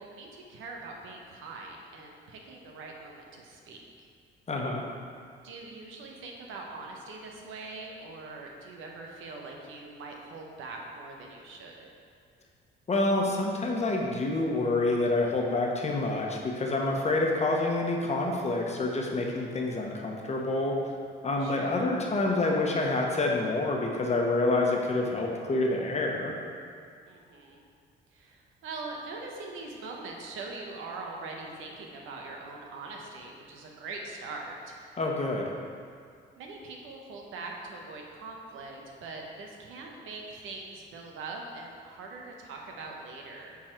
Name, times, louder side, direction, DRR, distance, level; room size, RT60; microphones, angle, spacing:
voice 1, 0.0-4.1 5.4-11.9 21.4-21.9 27.1-27.6 28.1-35.0 36.4-43.6, right 3 dB, 85° right, 0 dB, 1.0 m, -42 dB
voice 2, 4.5-4.8 12.9-20.8 21.2-26.4 35.0-35.5, left 2 dB, 35° left, -1 dB, 1.1 m, -27 dB
7.3 x 4.1 x 4.5 m, 2.2 s
cardioid pair, 90°, 20 cm